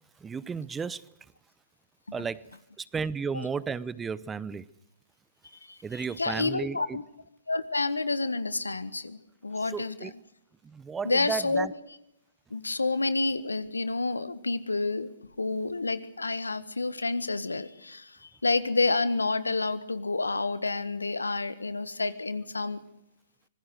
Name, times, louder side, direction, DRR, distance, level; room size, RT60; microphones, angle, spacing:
voice 1, 0.2-1.1 2.1-2.5 2.8-4.7 5.8-7.0 9.7-10.1 10.6-11.7, right 5 dB, 15° right, 0.8 m, -33 dB
voice 2, 5.4-7.0 7.5-10.1 11.0-11.7 12.5-15.1 15.4-22.8, left 3 dB, 85° left, 1.5 m, -29 dB
25.5 x 20.0 x 6.5 m
figure-of-eight pair, 115°, 0 cm